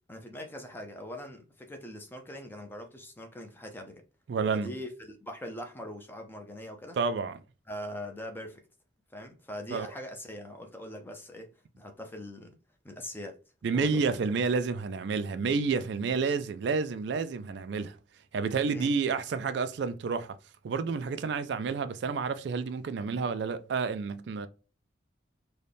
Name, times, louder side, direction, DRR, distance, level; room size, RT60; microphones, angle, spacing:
voice 1, 0.1-4.0 4.5-7.0 7.7-8.7 9.1-11.5 11.8-12.5 12.8-13.4 13.7-14.0 18.6-18.9, left 1 dB, 10° left, 0.5 m, -42 dB
voice 2, 4.3-4.7 7.0-7.4 9.7-9.9 13.6-18.0 18.3-20.4 20.6-24.5, right 5 dB, 60° right, 0.3 m, -30 dB
4.0 x 2.3 x 3.3 m
head